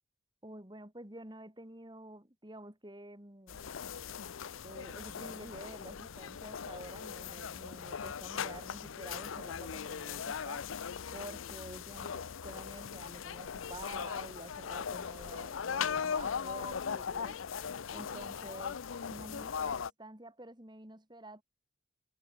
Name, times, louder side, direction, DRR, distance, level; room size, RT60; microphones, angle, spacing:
voice 1, 0.4-3.7 4.6-10.8 11.1-17.4 17.9-18.8 19.1-21.4, right 1 dB, 20° right, 2.5 m, -49 dB
sound 1, 3.5-19.9, left 7 dB, 80° left, 0.6 m, -39 dB
head